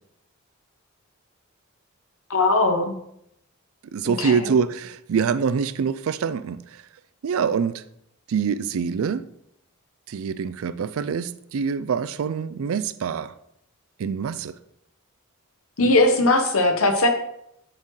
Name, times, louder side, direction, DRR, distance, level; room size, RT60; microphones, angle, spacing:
voice 1, 2.3-2.9 4.0-4.3 15.8-17.1, left 2 dB, 75° left, 6 dB, 1.0 m, -19 dB
voice 2, 3.9-6.8 7.2-7.8 8.3-9.3 10.1-13.3 14.0-14.6, right 6 dB, 70° right, 15 dB, 0.4 m, -25 dB
10.5 x 4.5 x 3.2 m, 0.76 s
head